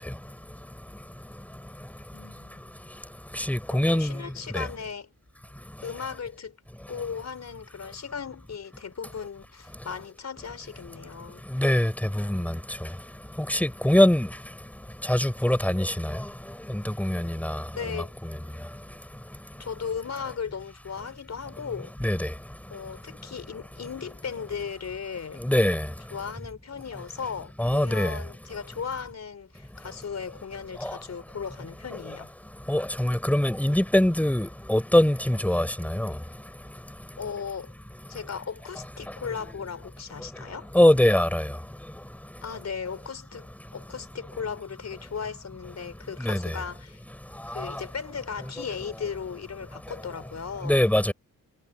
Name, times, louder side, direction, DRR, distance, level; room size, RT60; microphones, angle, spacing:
voice 1, 2.1-3.0 3.7-5.1 5.8-6.6 6.9-11.5 17.7-18.1 19.6-21.9 22.7-25.4 26.1-32.3 37.2-37.7 38.1-40.7 42.4-47.0 47.5-50.8, left 6 dB, 55° left, 4.5 m, -37 dB
voice 2, 3.4-4.1 4.5-4.6 11.6-12.5 13.5-14.3 15.1-15.9 16.9-17.6 22.0-22.3 25.4-25.8 27.6-28.1 30.8-30.9 32.7-36.1 40.7-41.4 46.2-46.5 50.7-51.1, left 1 dB, 5° left, 4.2 m, -22 dB
cardioid pair, 90°, 32 cm